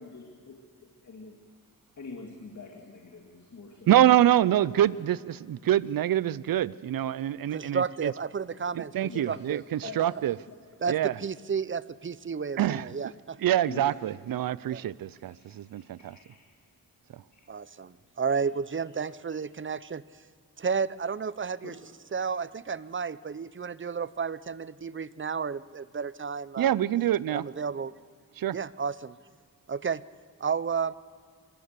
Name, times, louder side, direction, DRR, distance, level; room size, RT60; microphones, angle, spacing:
voice 1, 0.0-1.4 2.0-4.0 9.1-9.4 9.8-10.0 10.5-10.6 13.7-14.0 15.3-16.4 17.3-17.5 21.6-21.8, left 4 dB, 55° left, 2.3 m, -45 dB
voice 2, 3.9-8.1 8.8-10.4 10.9-11.1 12.6-12.9 13.4-16.2 17.1-17.2 26.6-27.4 28.4-28.6, right 12 dB, 75° right, 0.5 m, -25 dB
voice 3, 7.5-9.6 10.8-13.4 14.7-14.8 17.5-20.0 20.6-21.8 22.1-26.7 27.3-27.9 28.5-29.2 29.7-30.0 30.4-30.9, right 6 dB, 35° right, 0.6 m, -32 dB
24.5 x 13.5 x 8.1 m
cardioid pair, 70°, 35 cm